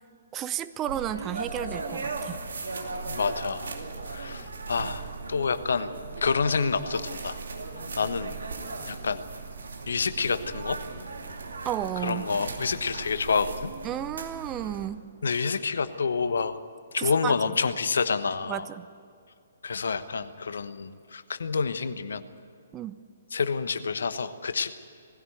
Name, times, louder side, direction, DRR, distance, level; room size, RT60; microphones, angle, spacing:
voice 1, 0.3-2.4 11.6-12.3 13.8-15.1 17.0-17.3 18.5-18.9 22.7-23.0, right 11 dB, 20° right, 13 dB, 0.6 m, -32 dB
sound 1, 0.9-14.9, right 4 dB, 65° right, 2.5 m, -37 dB
voice 2, 3.1-3.7 4.1-5.0 5.3-5.9 6.2-7.4 8.0-8.3 8.8-9.2 9.9-10.8 12.0-13.7 15.2-16.6 16.9-18.6 19.6-22.3 23.3-24.7, left 5 dB, 65° left, 12 dB, 1.2 m, -28 dB
20.0 x 16.0 x 9.1 m, 2.3 s
figure-of-eight pair, 125°, 0 cm